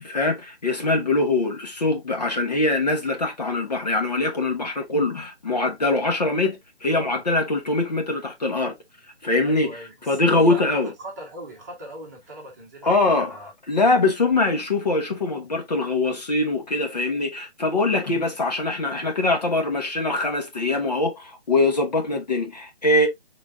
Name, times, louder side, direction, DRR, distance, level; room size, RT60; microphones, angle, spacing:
voice 1, 0.0-8.7 9.2-10.9 12.8-13.4 13.7-23.1, left 2 dB, 40° left, 1.0 m, -23 dB
voice 2, 9.4-13.5, right 2 dB, 15° right, 1.2 m, -39 dB
5.2 x 4.0 x 2.3 m
figure-of-eight pair, 155°, 33 cm